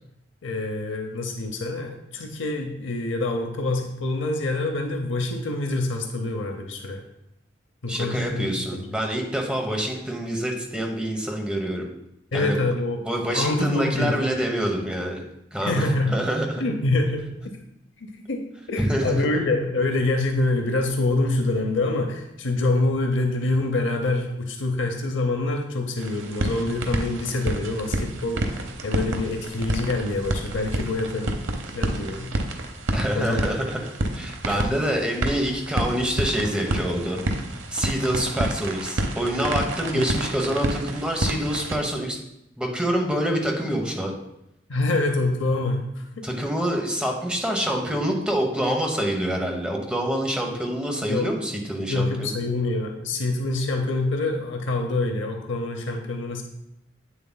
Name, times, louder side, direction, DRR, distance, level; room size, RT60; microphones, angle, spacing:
voice 1, 0.4-7.0 7.8-8.5 8.7-8.9 12.3-13.0 13.3-14.2 15.6-16.2 16.6-17.3 18.0-18.4 18.7-28.4 28.8-31.3 31.7-32.3 33.1-33.4 34.5-34.6 39.9-40.2 44.7-46.3 51.1-51.3 51.9-56.4, left 2 dB, 75° left, 4 dB, 0.7 m, -26 dB
voice 2, 7.9-11.9 12.3-12.6 13.0-15.2 15.5-16.6 18.8-19.3 32.9-37.2 37.7-42.2 42.6-44.1 46.2-52.4, equal, 5° right, 1 dB, 0.9 m, -26 dB
sound 1, 26.0-41.8, right 1 dB, 85° right, 0.8 m, -29 dB
8.4 x 7.0 x 2.2 m, 0.84 s
head